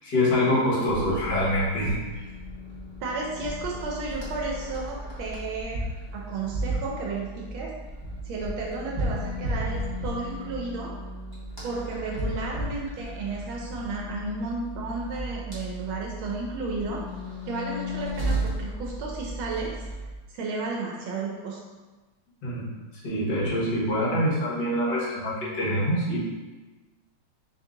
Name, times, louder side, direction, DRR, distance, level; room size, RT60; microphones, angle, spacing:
voice 1, 0.0-2.0 22.4-22.8 23.0-26.2, left 1 dB, 60° left, -8 dB, 2.0 m, -25 dB
sound 1, 0.9-20.2, right 1 dB, 15° right, 0.8 m, -34 dB
voice 2, 3.0-5.8 6.1-7.7 8.2-10.9 11.6-17.0 17.5-19.7 20.3-21.6, right 3 dB, 80° right, -2 dB, 1.4 m, -33 dB
4.0 x 2.7 x 3.7 m, 1.2 s
omnidirectional pair, 2.2 m